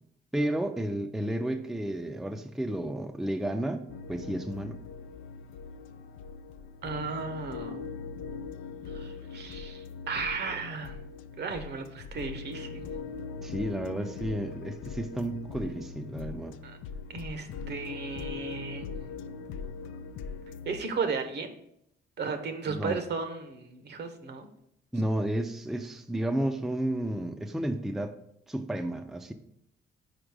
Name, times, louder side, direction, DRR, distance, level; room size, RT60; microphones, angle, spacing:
voice 1, 0.3-4.8 13.4-16.6 22.7-23.0 24.9-28.2 28.5-29.3, right 1 dB, ahead, 6 dB, 0.4 m, -32 dB
sound 1, 3.9-20.8, left 5 dB, 85° left, 0.4 m, -41 dB
voice 2, 6.8-7.9 8.9-11.0 11.4-12.8 16.6-16.8 17.1-18.9 20.6-21.5 22.2-24.5, right 4 dB, 60° right, 8 dB, 0.9 m, -35 dB
5.1 x 4.3 x 4.8 m, 0.74 s
cardioid pair, 90°, 20 cm